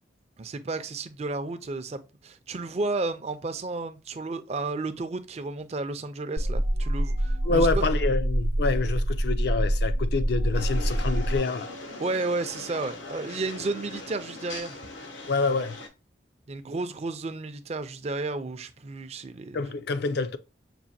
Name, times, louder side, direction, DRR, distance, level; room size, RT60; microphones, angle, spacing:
voice 1, 0.4-7.8 12.0-14.8 16.5-19.7, right 3 dB, 35° right, 0.4 m, -32 dB
sound 1, 6.4-11.4, right 1 dB, 85° right, 0.7 m, -26 dB
voice 2, 7.4-11.7 15.3-15.8 19.5-20.4, left 3 dB, 60° left, 0.4 m, -27 dB
sound 2, 10.5-15.9, left 2 dB, 90° left, 0.9 m, -40 dB
6.0 x 2.5 x 2.7 m
head